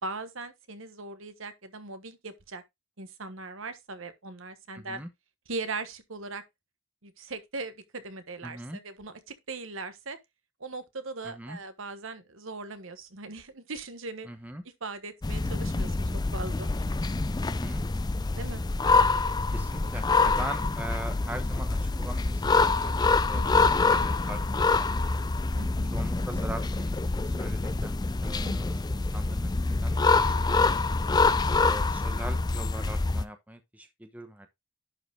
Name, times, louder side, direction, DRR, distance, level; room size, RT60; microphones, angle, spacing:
voice 1, 0.0-2.6 3.0-5.0 5.5-6.4 7.0-10.2 10.6-14.3 14.8-16.7 18.4-18.6 23.3-23.7 25.5-25.9 28.4-28.6, right 3 dB, 65° right, 1.3 m, -39 dB
voice 2, 4.7-5.1 8.4-8.8 11.2-11.6 14.2-14.6 17.4-17.8 19.5-22.9 23.2-23.4 23.7-25.2 25.9-29.5 29.8-30.8 31.6-34.5, right 1 dB, 5° right, 1.0 m, -41 dB
sound 1, 15.2-33.2, left 3 dB, 20° left, 0.4 m, -26 dB
11.0 x 5.0 x 3.5 m
head